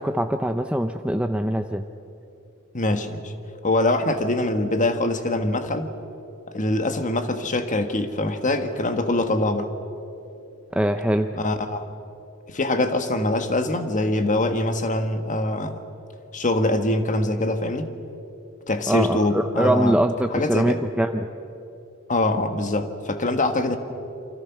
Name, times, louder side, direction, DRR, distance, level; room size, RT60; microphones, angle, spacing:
voice 1, 0.0-1.8 10.7-11.4 18.9-21.3, right 1 dB, 5° right, 6 dB, 0.6 m, -23 dB
voice 2, 2.7-3.3 3.6-5.9 6.5-9.7 11.3-11.8 12.5-15.8 16.3-17.9 18.7-20.0 20.3-20.8 22.1-23.8, left 2 dB, 35° left, 8 dB, 1.5 m, -23 dB
28.5 x 24.5 x 6.0 m, 2.8 s
head